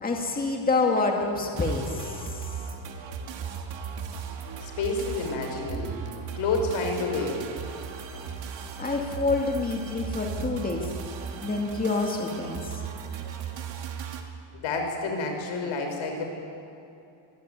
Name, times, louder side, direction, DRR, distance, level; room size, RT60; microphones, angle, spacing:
voice 1, 0.0-2.5 8.8-10.9 11.4-12.8, left 3 dB, 20° left, 1 dB, 2.4 m, -27 dB
sound 1, 1.5-14.2, right 6 dB, 70° right, 2.7 m, -37 dB
voice 2, 4.6-6.0 6.3-7.4 14.5-16.3, left 3 dB, 85° left, 3 dB, 6.0 m, -29 dB
25.0 x 21.5 x 9.6 m, 2.7 s
cardioid pair, 175°, 46 cm